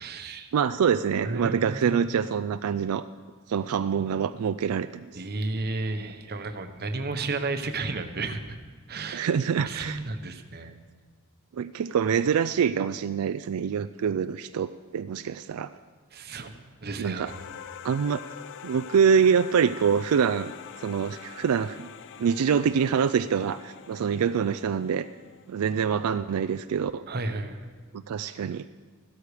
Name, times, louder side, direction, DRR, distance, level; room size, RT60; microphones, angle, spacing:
voice 1, 0.0-0.5 1.2-2.0 5.1-8.6 8.9-9.3 9.6-10.8 16.1-17.3 27.1-27.6, right 3 dB, 50° right, 8 dB, 1.0 m, -33 dB
voice 2, 0.5-3.0 3.5-5.2 9.1-10.0 11.5-15.7 17.0-17.3 17.8-18.2 18.6-20.5 20.8-21.9 22.2-25.1 25.5-27.0 27.9-28.6, right 7 dB, 90° right, 10 dB, 0.4 m, -25 dB
sound 1, 17.3-25.9, left 8 dB, 60° left, 0.5 m, -45 dB
15.0 x 13.0 x 4.9 m, 1.5 s
head